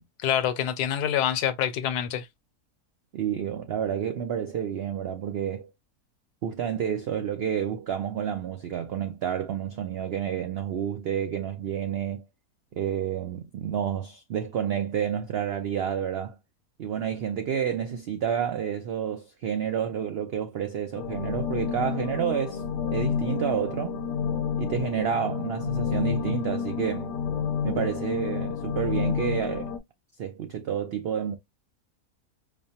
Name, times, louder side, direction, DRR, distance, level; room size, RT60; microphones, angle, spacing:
voice 1, 0.2-2.3, left 10 dB, 85° left, 1.2 m, -26 dB
voice 2, 3.1-5.7 6.4-12.2 12.7-16.4 16.8-22.6 22.9-24.0 24.6-27.1 27.6-29.7 30.2-31.4, right 8 dB, 85° right, 0.5 m, -29 dB
sound 1, 21.0-29.8, left 6 dB, 60° left, 0.8 m, -29 dB
5.1 x 2.2 x 2.7 m
omnidirectional pair, 1.6 m